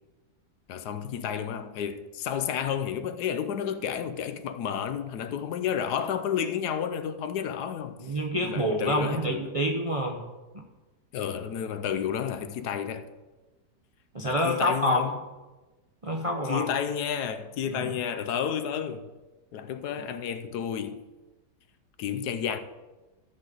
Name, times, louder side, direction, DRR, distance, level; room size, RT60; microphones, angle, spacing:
voice 1, 0.7-8.0 8.4-9.5 11.1-13.1 14.2-15.1 16.5-19.1 19.5-21.0 22.0-22.6, left 8 dB, 70° left, 1.2 m, -31 dB
voice 2, 8.0-10.2 10.5-10.7 14.1-15.0 16.0-16.7 17.7-17.9, equal, 35° right, 0.5 m, -27 dB
13.0 x 7.4 x 3.9 m
omnidirectional pair, 1.8 m